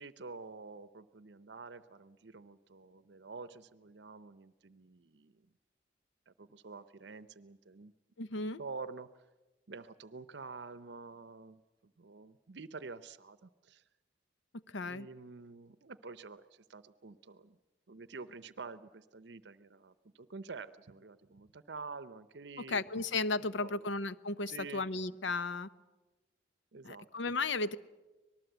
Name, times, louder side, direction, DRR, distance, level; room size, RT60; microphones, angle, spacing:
voice 1, 0.0-5.4 6.3-7.9 8.4-9.2 9.7-13.8 14.8-17.6 17.9-22.8 23.4-23.9 24.5-24.9 26.7-27.3, right 4 dB, 65° right, 14 dB, 0.7 m, -48 dB
voice 2, 8.2-8.6 14.7-15.1 22.7-25.7 26.8-27.8, left 3 dB, 80° left, 15 dB, 0.8 m, -34 dB
25.5 x 19.5 x 8.0 m, 1.2 s
head